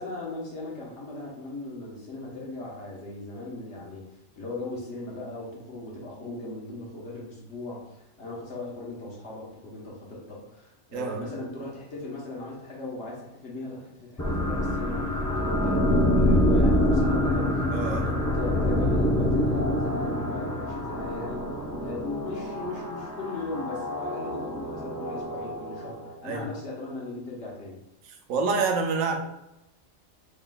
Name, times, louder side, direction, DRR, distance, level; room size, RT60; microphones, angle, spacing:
voice 1, 0.0-4.0 4.4-17.6 18.0-21.5 21.8-27.8, left 2 dB, 60° left, -4 dB, 1.3 m, -38 dB
sound 1, 14.2-26.1, left 1 dB, 25° left, 0.4 m, -26 dB
voice 2, 17.7-18.1 26.2-26.5 28.3-29.2, right 4 dB, 90° right, 3 dB, 1.0 m, -27 dB
3.7 x 3.6 x 2.3 m, 0.86 s
omnidirectional pair, 1.3 m